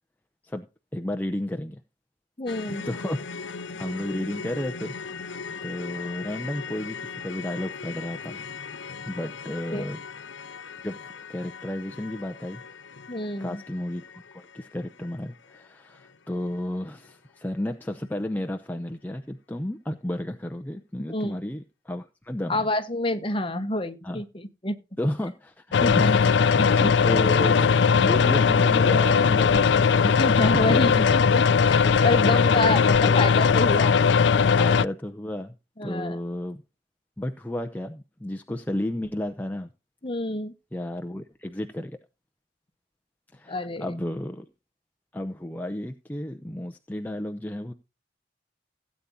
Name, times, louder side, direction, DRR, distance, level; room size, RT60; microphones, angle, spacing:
voice 1, 0.9-1.8 2.7-4.9 5.6-8.5 9.1-10.0 10.8-12.6 13.4-14.0 14.3-22.7 24.0-24.2 25.0-30.0 30.4-31.0 32.4-33.3 34.6-35.5 35.8-36.6 37.2-39.7 40.7-42.0 43.3-44.5 45.1-47.7, left 1 dB, 10° left, 0.7 m, -32 dB
voice 2, 2.4-2.9 9.7-9.9 13.1-13.6 21.1-21.4 22.5-24.8 25.8-26.2 26.5-26.9 30.0-33.9 34.4-34.5 35.8-36.2 40.0-40.5 43.5-43.9, left 1 dB, 30° left, 1.2 m, -28 dB
sound 1, 2.5-16.7 16.9-17.1 17.5-17.6, left 5 dB, 85° left, 0.9 m, -39 dB
sound 2, 25.7-34.9, left 6 dB, 70° left, 0.4 m, -19 dB
16.5 x 8.5 x 2.7 m
head